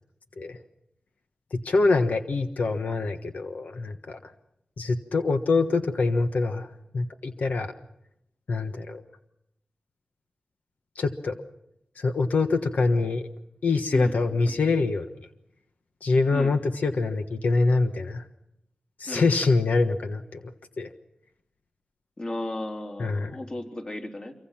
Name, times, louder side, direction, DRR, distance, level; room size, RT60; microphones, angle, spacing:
voice 1, 1.5-4.2 4.8-6.7 6.9-7.7 8.5-9.0 10.9-11.3 12.0-13.2 13.6-15.1 16.0-18.2 19.0-20.4 20.8-20.9 23.0-23.3, left 3 dB, 90° left, 6 dB, 1.4 m, -24 dB
voice 2, 13.9-14.6 16.3-16.6 19.1-19.3 22.2-24.3, left 1 dB, 35° left, 2 dB, 3.6 m, -35 dB
26.5 x 24.5 x 5.9 m, 0.80 s
wide cardioid pair, 80°, 3 cm